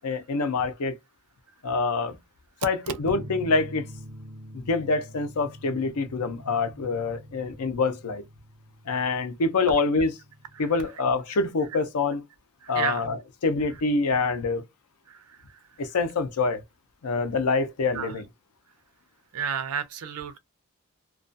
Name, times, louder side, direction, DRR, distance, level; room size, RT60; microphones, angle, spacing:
voice 1, 0.0-1.0 1.6-2.2 2.6-3.9 4.5-8.2 8.9-10.1 10.6-12.2 12.7-14.6 15.8-16.6 17.0-18.3, left 3 dB, 90° left, 0.5 m, -26 dB
sound 1, 3.0-10.7, equal, 35° right, 0.7 m, -45 dB
voice 2, 19.3-20.4, right 8 dB, 80° right, 0.5 m, -30 dB
2.3 x 2.2 x 2.5 m
head